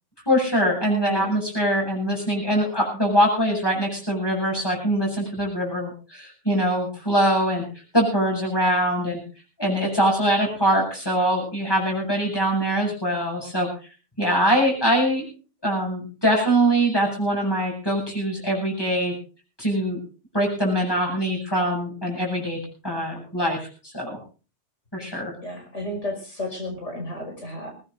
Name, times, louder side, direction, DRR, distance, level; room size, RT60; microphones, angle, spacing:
voice 1, 0.3-7.6 7.9-9.2 9.6-13.7 14.2-15.2 15.6-19.1 19.6-20.0 20.3-23.7 23.9-24.2 24.9-25.3, right 1 dB, 20° left, -1 dB, 7.6 m, -23 dB
voice 2, 25.4-27.7, left 1 dB, 85° left, 2 dB, 6.0 m, -32 dB
21.0 x 19.5 x 2.6 m, 0.36 s
omnidirectional pair, 1.2 m